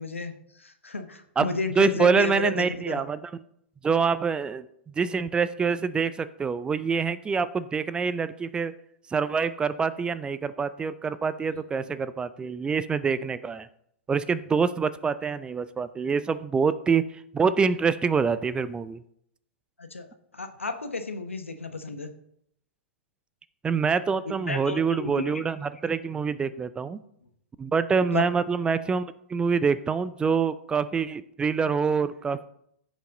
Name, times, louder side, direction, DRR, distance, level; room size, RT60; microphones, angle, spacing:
voice 1, 0.0-3.0 11.5-11.6 19.8-20.1 20.3-22.1 24.5-25.4 28.1-28.2, left 3 dB, 90° left, 7 dB, 1.1 m, -32 dB
voice 2, 1.4-3.2 3.8-4.6 5.0-8.7 9.1-13.7 14.1-17.1 17.3-19.0 23.6-27.0 27.6-32.5, right 5 dB, 15° right, 15 dB, 0.4 m, -26 dB
15.5 x 5.3 x 3.8 m, 0.73 s
figure-of-eight pair, 110°, 7 cm